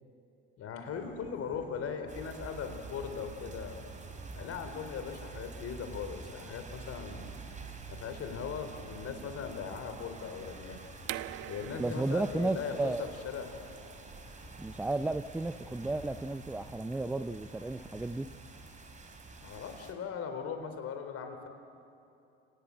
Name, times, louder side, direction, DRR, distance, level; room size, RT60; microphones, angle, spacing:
voice 1, 0.6-3.8 4.3-7.4 7.9-10.8 11.5-13.5 19.4-21.5, left 6 dB, 45° left, 7 dB, 4.1 m, -39 dB
sound 1, 0.8-18.7, left 3 dB, 25° left, 2.5 m, -56 dB
sound 2, 2.1-19.9, right 4 dB, 20° right, 3.9 m, -48 dB
sound 3, 11.0-16.6, right 16 dB, 60° right, 0.9 m, -46 dB
voice 2, 11.8-13.0 14.6-18.3, right 2 dB, 5° right, 11 dB, 0.5 m, -33 dB
29.0 x 18.5 x 7.8 m, 2.7 s
hypercardioid pair, 80°, 33 cm